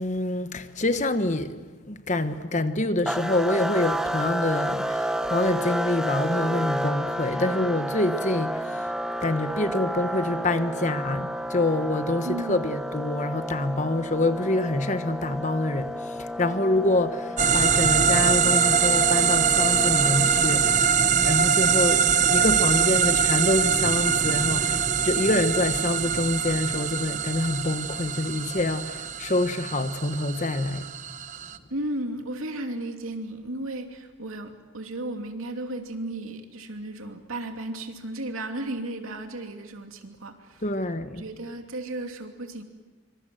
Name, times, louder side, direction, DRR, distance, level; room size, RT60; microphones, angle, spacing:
voice 1, 0.0-1.6 1.9-8.8 9.2-30.9 40.6-41.2, left 2 dB, 35° left, 1.2 m, -26 dB
sound 1, 3.1-20.9, equal, 5° right, 0.8 m, -31 dB
voice 2, 12.2-12.7 31.7-40.6 41.2-42.6, right 1 dB, 85° right, 2.8 m, -34 dB
sound 2, 17.4-31.6, right 7 dB, 35° right, 0.8 m, -23 dB
26.0 x 25.0 x 7.8 m
head